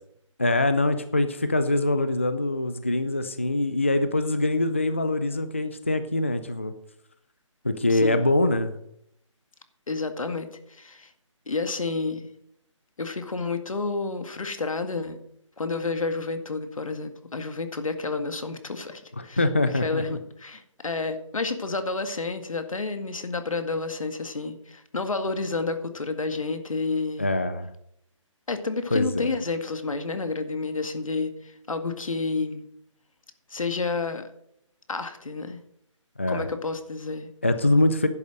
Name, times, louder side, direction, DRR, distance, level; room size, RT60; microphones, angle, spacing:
voice 1, 0.4-6.7 7.6-8.8 19.2-20.0 27.2-27.7 28.9-29.3 36.2-36.5 37.4-38.1, left 2 dB, 25° left, 11 dB, 0.4 m, -24 dB
voice 2, 7.9-8.3 9.9-11.1 11.5-12.2 13.0-15.2 15.6-19.4 19.8-27.3 28.5-32.7 33.5-34.3 34.9-35.6 36.3-37.3, left 3 dB, 85° left, 9 dB, 1.9 m, -30 dB
11.0 x 8.4 x 6.5 m, 0.72 s
hypercardioid pair, 180°, 17 cm